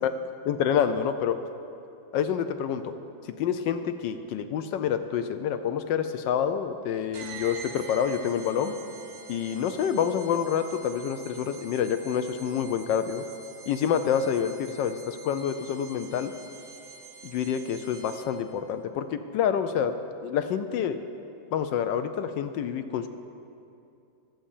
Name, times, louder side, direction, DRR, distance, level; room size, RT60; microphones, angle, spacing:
voice 1, 0.5-1.4 2.1-2.9 3.4-8.8 9.3-13.2 13.7-16.3 17.2-19.9 20.2-21.0 21.5-23.1, left 8 dB, 75° left, 10 dB, 1.2 m, -27 dB
sound 1, 7.1-18.5, right 4 dB, 85° right, 1.7 m, -45 dB
11.0 x 7.6 x 7.1 m, 2.6 s
omnidirectional pair, 2.1 m